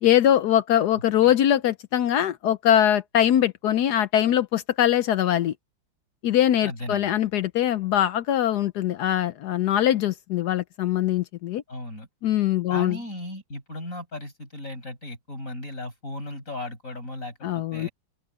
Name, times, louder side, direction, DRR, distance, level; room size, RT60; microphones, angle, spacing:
voice 1, 0.0-5.5 6.2-11.6 12.2-13.0 17.4-17.9, left 11 dB, 70° left, 1.0 m, -22 dB
voice 2, 6.6-7.1 11.7-12.1 12.7-17.9, left 1 dB, 40° left, 7.7 m, -36 dB
open air
omnidirectional pair, 2.2 m